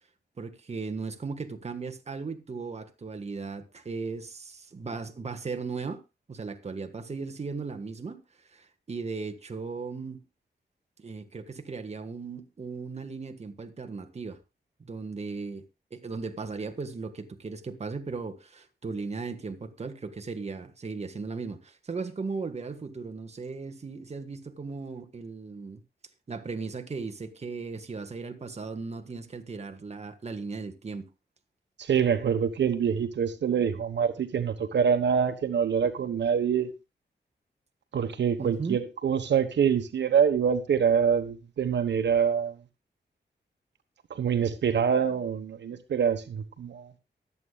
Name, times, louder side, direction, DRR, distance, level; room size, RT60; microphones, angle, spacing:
voice 1, 0.4-6.0 6.3-8.2 8.5-10.2 11.0-14.4 14.8-15.6 15.9-25.8 26.3-31.1 38.4-38.8, right 4 dB, 35° right, 1.5 m, -37 dB
voice 2, 31.8-36.7 37.9-42.6 44.1-46.9, right 7 dB, 90° right, 1.2 m, -25 dB
23.0 x 8.4 x 2.4 m
wide cardioid pair, 115°, 18 cm